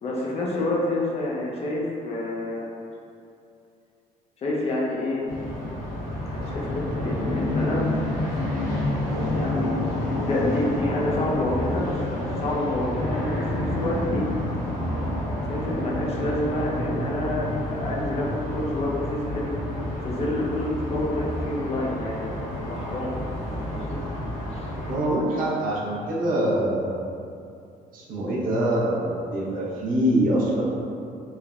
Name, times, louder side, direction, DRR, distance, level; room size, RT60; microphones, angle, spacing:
voice 1, 0.0-2.7 4.4-5.3 6.4-7.9 9.3-9.7 10.1-14.3 15.5-19.5 20.0-23.3 23.6-24.0 24.5-24.7, left 2 dB, 40° left, -3 dB, 0.5 m, -28 dB
sound 1, 5.3-25.0, left 1 dB, 65° left, 1.2 m, -29 dB
voice 2, 24.9-27.0 27.9-30.6, right 1 dB, 65° right, -5 dB, 0.6 m, -24 dB
3.2 x 2.0 x 2.4 m, 2.5 s
cardioid pair, 130°, 15 cm